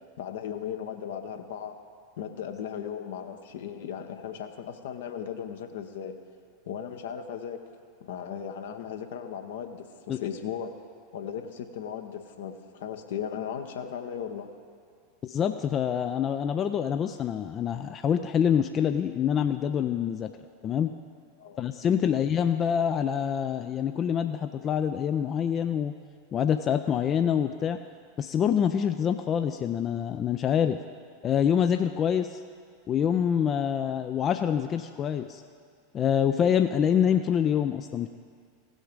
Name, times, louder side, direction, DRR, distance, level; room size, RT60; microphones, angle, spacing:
voice 1, 0.2-1.8 2.2-6.2 6.7-7.6 8.0-10.7 11.1-14.5 21.4-21.6 22.0-22.2, left 8 dB, 65° left, 6 dB, 0.9 m, -36 dB
voice 2, 15.2-20.3 20.6-20.9 21.6-25.9 26.3-27.8 28.2-30.8 31.2-32.4 32.9-35.4 35.9-38.1, left 8 dB, 30° left, 8 dB, 0.4 m, -26 dB
16.5 x 6.3 x 5.1 m, 2.1 s
figure-of-eight pair, 85°, 0 cm